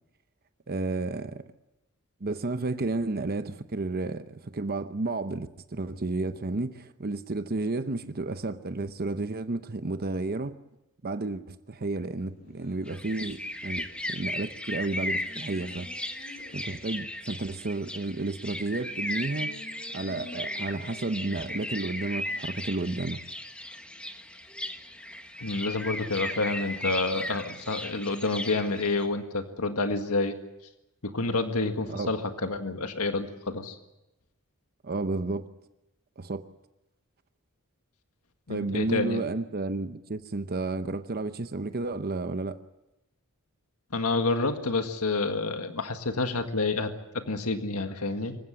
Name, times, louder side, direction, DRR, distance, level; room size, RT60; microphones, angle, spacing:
voice 1, 0.7-1.4 2.2-10.5 11.0-15.9 16.5-19.5 19.9-23.2 31.9-32.1 34.8-35.5 36.2-36.4 38.5-42.6, right 2 dB, 45° right, 10 dB, 0.8 m, -32 dB
Race car auto racing, 11.9-28.1, left 2 dB, 45° left, 3.4 m, -53 dB
sound 1, 12.9-29.0, left 1 dB, 5° left, 1.3 m, -36 dB
voice 2, 25.4-30.4 31.0-33.8 38.5-39.3 43.9-48.4, left 3 dB, 85° left, 6 dB, 1.8 m, -29 dB
25.5 x 15.5 x 9.9 m, 0.95 s
head